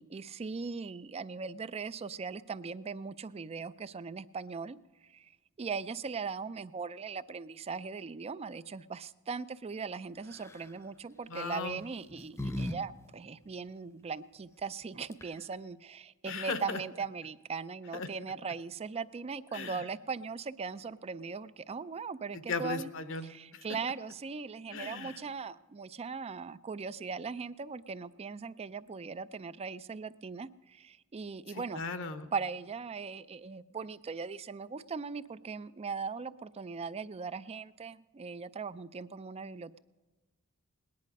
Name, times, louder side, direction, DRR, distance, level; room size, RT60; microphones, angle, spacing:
voice 1, 0.0-4.8 5.1-5.3 5.6-22.9 23.2-31.8 32.3-39.8, right 5 dB, 30° right, 16 dB, 0.4 m, -39 dB
sound 1, 10.3-10.7 11.7-12.8 13.0-13.1 14.8-14.9 15.1-15.5, left 1 dB, 10° left, 0.7 m, -38 dB
voice 2, 11.3-11.8 16.3-16.8 17.9-18.1 19.5-19.8 22.5-23.6 24.7-25.2 31.5-32.3, left 4 dB, 60° left, 10 dB, 0.9 m, -37 dB
19.0 x 10.5 x 5.3 m, 1.2 s
head